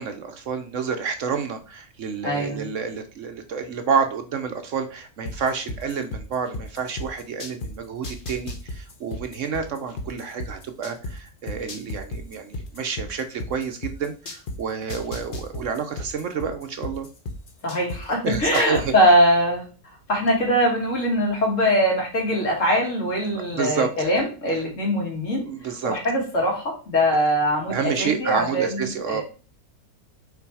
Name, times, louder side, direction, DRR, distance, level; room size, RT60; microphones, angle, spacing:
voice 1, 0.0-17.1 18.2-18.9 23.5-23.9 25.4-26.0 27.7-29.2, right 6 dB, 65° right, 7 dB, 0.9 m, -29 dB
voice 2, 2.2-2.7 17.6-19.7 20.1-25.4 25.8-29.2, equal, 55° left, -1 dB, 2.5 m, -22 dB
sound 1, 5.3-7.7 8.0-11.1 11.5-14.6 14.9-18.0 18.3-18.9, left 2 dB, 40° left, 0.9 m, -33 dB
5.8 x 3.8 x 4.7 m, 0.37 s
omnidirectional pair, 1.6 m